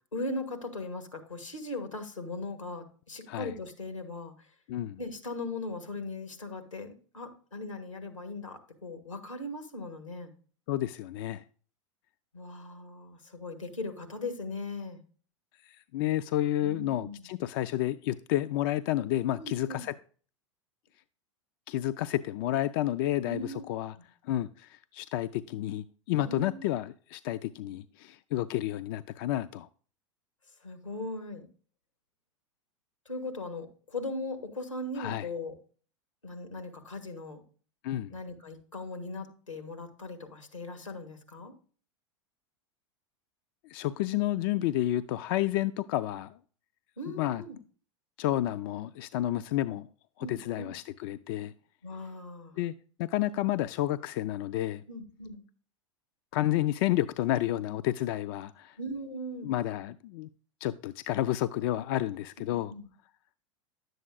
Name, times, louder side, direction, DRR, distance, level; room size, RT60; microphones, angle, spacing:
voice 1, 0.1-4.5 5.0-10.3 12.3-15.0 16.6-17.3 19.4-19.8 23.2-23.6 26.3-26.6 30.6-31.5 33.0-35.6 36.2-37.4 38.1-41.5 47.0-47.6 50.2-50.7 51.8-52.6 54.9-55.4 58.8-59.5 62.4-62.9, left 2 dB, 85° left, 1.5 m, -39 dB
voice 2, 4.7-5.0 10.7-11.4 15.6-19.9 21.7-24.0 24.2-29.7 35.0-35.3 37.8-38.2 43.7-46.4 47.1-47.4 48.2-49.9 50.2-51.5 52.6-52.7 53.0-54.8 56.3-58.8 59.4-60.3 60.6-62.7, left 14 dB, 45° left, 0.4 m, -30 dB
11.0 x 7.8 x 2.3 m
figure-of-eight pair, 85°, 16 cm